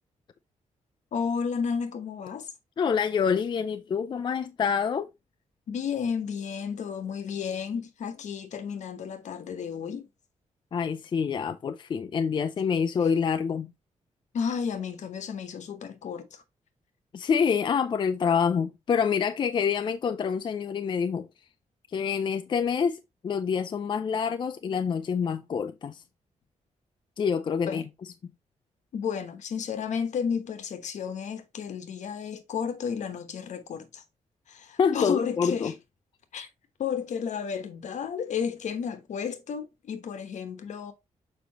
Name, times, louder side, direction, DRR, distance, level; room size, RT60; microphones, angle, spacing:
voice 1, 1.1-2.5 5.7-10.1 14.3-16.4 27.7-27.9 28.9-34.0 34.5-35.7 36.3-36.5 36.8-40.9, left 6 dB, 70° left, 1.1 m, -32 dB
voice 2, 2.8-5.1 10.7-13.7 17.1-21.3 21.9-26.0 27.2-27.8 34.8-35.7, left 6 dB, 40° left, 0.5 m, -26 dB
6.8 x 5.2 x 2.9 m
wide cardioid pair, 160°, 13 cm